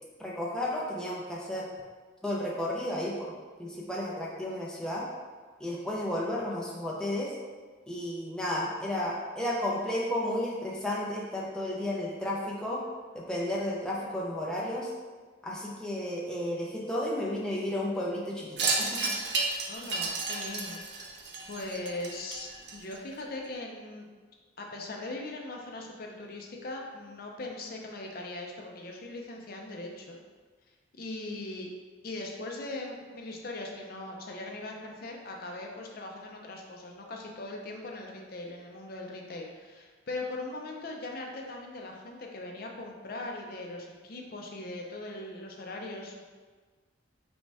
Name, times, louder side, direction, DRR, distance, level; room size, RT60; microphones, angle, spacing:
voice 1, 0.2-1.7 2.2-3.3 3.6-5.1 5.6-7.3 7.9-12.8 13.1-14.9 15.4-19.1, left 1 dB, 5° left, -5 dB, 0.6 m, -33 dB
Wind chime, 18.6-23.2, right 3 dB, 55° right, 0.5 m, -32 dB
voice 2, 19.7-24.1 24.6-30.2 31.0-31.7 32.0-46.2, left 2 dB, 50° left, 0 dB, 0.5 m, -40 dB
5.2 x 2.3 x 3.3 m, 1.4 s
head